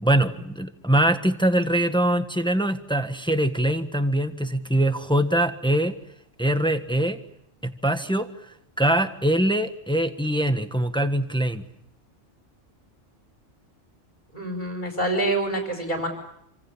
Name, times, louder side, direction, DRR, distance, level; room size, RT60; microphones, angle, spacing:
voice 1, 0.0-5.9 6.4-7.2 7.6-8.3 8.8-11.6, right 1 dB, 5° left, 9 dB, 1.3 m, -23 dB
voice 2, 14.3-16.1, right 2 dB, 35° left, 2 dB, 5.1 m, -26 dB
27.5 x 26.0 x 7.3 m, 0.75 s
omnidirectional pair, 1.3 m